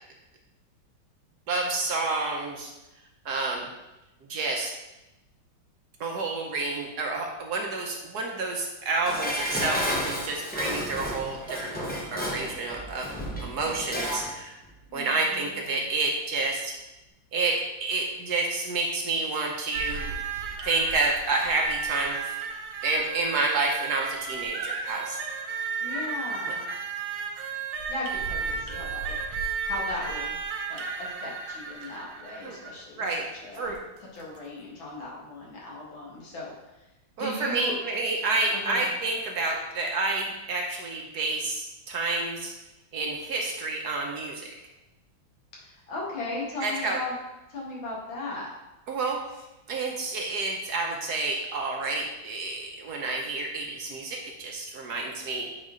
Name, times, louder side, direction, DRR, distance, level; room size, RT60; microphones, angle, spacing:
voice 1, 1.5-2.7 3.2-3.7 4.3-4.7 6.0-14.5 14.9-16.7 17.3-20.2 20.6-22.5 22.8-25.2 32.4-32.6 33.0-33.2 33.5-33.8 37.2-42.5 42.9-44.5 46.6-47.0 48.9-49.2 49.7-55.5, right 3 dB, 60° right, 1 dB, 1.2 m, -29 dB
Dishes pots and pans, 9.0-14.3 14.7-14.8, equal, 10° left, 0.4 m, -32 dB
voice 2, 14.9-15.9 25.8-26.7 27.9-30.4 30.7-33.7 34.1-36.7 37.2-37.7 38.7-38.9 45.6-47.1 47.5-48.5, left 2 dB, 75° left, -4 dB, 2.4 m, -37 dB
sound 1, 19.7-32.8 33.7-33.8 34.2-34.4, right 5 dB, 80° right, 1.6 m, -33 dB
8.3 x 4.2 x 3.7 m, 0.98 s
omnidirectional pair, 2.2 m